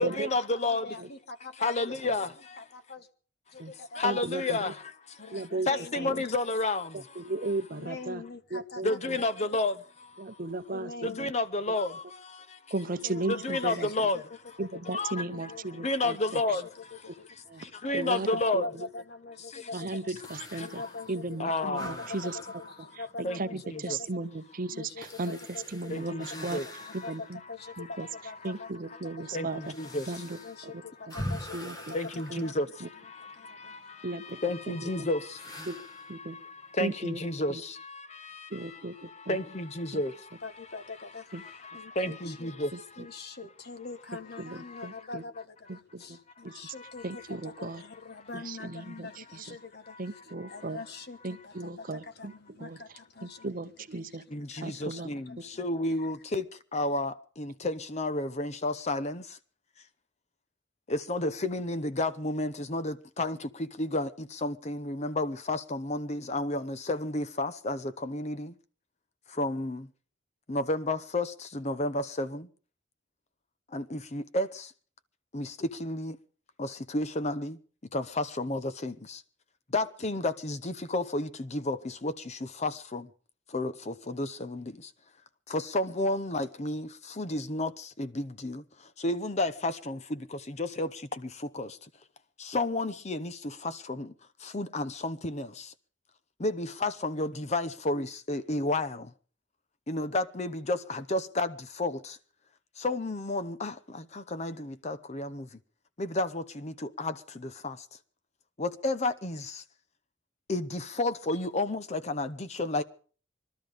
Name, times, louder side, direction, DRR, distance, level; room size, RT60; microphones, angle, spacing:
voice 1, 0.0-0.9 1.6-2.3 4.0-5.2 5.7-7.3 8.8-10.2 11.0-12.6 13.3-14.2 14.9-15.5 15.8-16.7 17.6-18.6 19.5-19.6 20.3-20.9 21.4-22.1 23.2-23.4 23.7-24.0 25.9-27.1 27.8-27.9 29.2-30.5 31.9-40.4 41.4-42.8 44.7-44.9 46.5-47.2 50.4-50.6 54.3-59.4 60.9-68.5 69.3-69.9 70.5-72.5 73.7-74.7 75.3-76.2 76.6-77.6 77.9-79.2 79.7-83.1 83.5-84.9 85.5-91.8 92.4-94.1 94.4-95.7 96.4-99.1 99.9-102.2 102.8-105.6 106.0-107.9 108.6-109.6 110.5-112.8, left 2 dB, 35° left, 0.8 m, -32 dB
voice 2, 0.5-2.3 2.6-3.1 3.5-4.0 5.2-6.3 7.7-9.5 10.7-11.3 12.9-14.2 14.6-16.1 16.4-20.1 20.6-24.2 24.7-26.1 26.5-29.9 30.4-32.6 32.8-32.9 33.2-33.9 40.4-42.6 43.0-53.5 53.8-55.6 56.0-56.1, left 3 dB, 55° left, 1.3 m, -44 dB
voice 3, 4.0-4.6 5.3-5.7 6.0-6.2 6.9-8.2 8.5-9.2 10.2-11.3 11.7-11.8 12.7-13.9 14.6-16.4 17.5-17.6 17.9-18.3 18.5-18.6 19.7-20.8 21.1-22.4 23.2-25.4 25.7-26.6 26.9-27.2 27.8-28.1 28.4-29.6 30.1-30.7 31.5-32.0 32.3-32.4 32.8-32.9 34.0-35.1 35.7-35.8 36.1-36.4 36.8-37.2 37.5-37.6 38.5-39.4 39.9-40.0 41.3-41.4 42.0-42.2 42.7-43.1 44.4-44.6 44.8-45.2 45.7-46.2 46.4-46.5 47.0-47.8 48.3-49.6 50.0-50.8 51.2-52.3 52.6-52.8 53.2-54.2 54.6-55.1, right 2 dB, 45° right, 0.8 m, -36 dB
sound 1, 20.2-27.4 27.9-28.0 28.7-33.3 35.3-36.1, equal, 20° left, 1.5 m, -44 dB
21.5 x 12.5 x 5.1 m
head